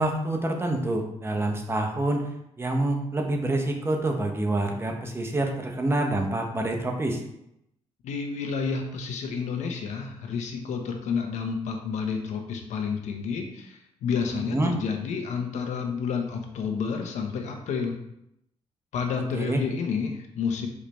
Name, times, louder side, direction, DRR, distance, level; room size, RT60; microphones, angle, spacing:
voice 1, 0.0-2.3 2.6-7.2 14.3-14.7 19.3-19.6, right 2 dB, 20° right, 2 dB, 1.2 m, -27 dB
voice 2, 8.0-18.0 18.9-20.7, left 5 dB, 85° left, 3 dB, 1.1 m, -30 dB
5.3 x 4.8 x 4.3 m, 0.79 s
cardioid pair, 100°, 12 cm